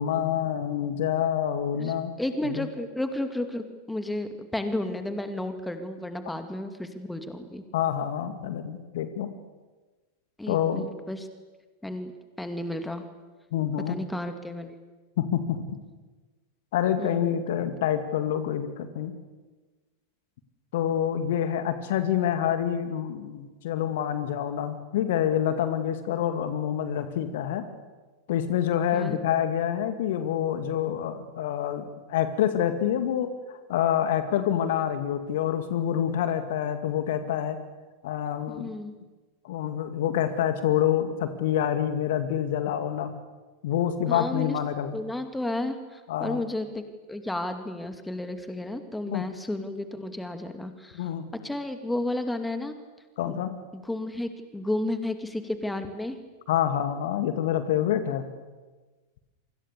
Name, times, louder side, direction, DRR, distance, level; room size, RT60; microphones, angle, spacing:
voice 1, 0.0-2.1 2.5-2.7 7.7-9.3 10.5-10.9 13.5-14.0 15.2-15.8 16.7-19.1 20.7-27.6 28.3-37.6 38.0-38.7 39.4-43.1 43.6-45.0 46.1-46.4 49.1-49.2 50.9-51.3 53.2-53.5 56.5-58.3, left 10 dB, 55° left, 9 dB, 2.2 m, -27 dB
voice 2, 1.8-7.6 10.4-11.3 11.8-13.1 13.9-14.8 17.0-17.4 28.9-29.2 38.5-39.0 44.1-44.6 44.9-46.8 47.1-51.1 51.4-52.8 53.3-53.5 53.7-56.2, left 1 dB, 5° left, 8 dB, 2.5 m, -32 dB
29.0 x 25.0 x 6.9 m, 1.2 s
figure-of-eight pair, 90°, 0 cm